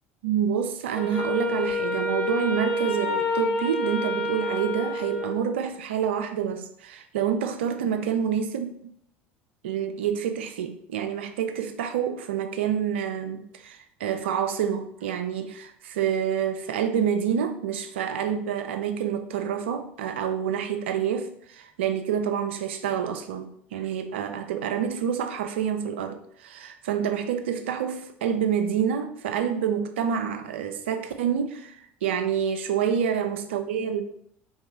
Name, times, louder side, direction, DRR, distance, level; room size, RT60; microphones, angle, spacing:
voice 1, 0.2-8.7 9.6-34.0, right 8 dB, 85° right, 0.5 m, -28 dB
Wind instrument woodwind instrument, 1.0-5.6, left 1 dB, 20° left, 1.4 m, -28 dB
3.9 x 2.7 x 4.7 m
hypercardioid pair, 75°, 6 cm